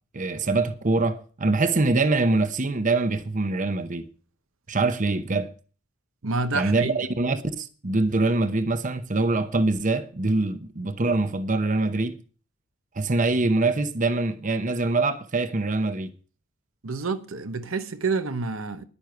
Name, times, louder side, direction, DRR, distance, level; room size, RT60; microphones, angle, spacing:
voice 1, 0.1-4.1 4.7-5.5 6.5-12.2 12.9-16.1, right 3 dB, 40° right, 0.9 m, -24 dB
voice 2, 6.2-7.1 16.8-18.8, right 4 dB, 75° right, 1.0 m, -28 dB
11.0 x 9.8 x 5.8 m
head